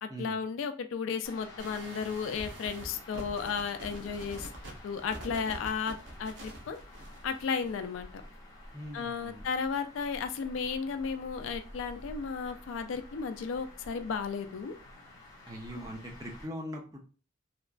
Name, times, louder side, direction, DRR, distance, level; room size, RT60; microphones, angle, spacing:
voice 1, 0.0-4.5 4.8-6.8 7.2-8.1 8.9-14.7 15.7-15.9, left 5 dB, 80° left, 8 dB, 0.3 m, -34 dB
sound 1, 1.2-16.4, left 1 dB, 15° left, 0.8 m, -50 dB
sound 2, 1.6-7.7, right 1 dB, 70° right, 0.7 m, -46 dB
voice 2, 8.7-9.5 15.4-17.0, equal, 20° right, 1 dB, 0.5 m, -41 dB
2.9 x 2.3 x 2.4 m, 0.36 s
head